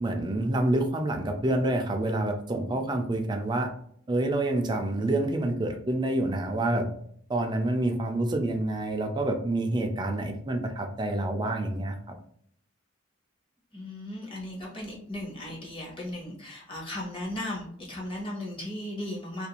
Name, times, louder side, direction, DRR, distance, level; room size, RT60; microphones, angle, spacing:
voice 1, 0.0-3.7 4.1-6.9 7.3-12.2, right 1 dB, 20° right, 3 dB, 0.3 m, -27 dB
voice 2, 13.7-19.5, left 1 dB, 25° left, -3 dB, 0.8 m, -36 dB
2.5 x 2.3 x 2.9 m, 0.63 s
head